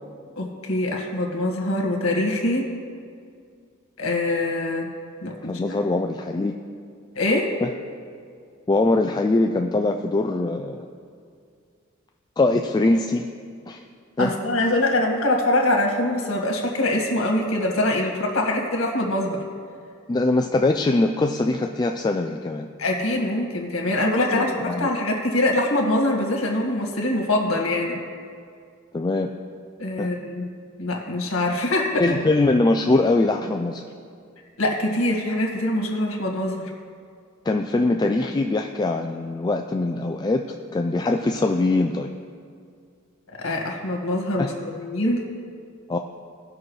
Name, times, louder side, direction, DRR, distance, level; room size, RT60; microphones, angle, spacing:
voice 1, 0.4-2.7 4.0-4.9 5.2-5.6 7.1-7.5 14.2-19.4 22.8-28.0 29.8-30.5 30.8-32.2 34.6-36.7 43.4-45.2, left 1 dB, 85° left, 1 dB, 1.8 m, -24 dB
voice 2, 5.5-6.5 7.6-7.7 8.7-10.9 12.4-13.3 13.7-13.8 14.2-14.4 20.1-22.7 24.3-24.9 28.9-29.3 30.0-30.1 32.0-33.8 37.5-40.5 40.7-42.1 44.4-44.5 45.9-46.0, left 2 dB, 20° left, 4 dB, 0.3 m, -22 dB
18.0 x 6.0 x 3.2 m, 2.2 s
head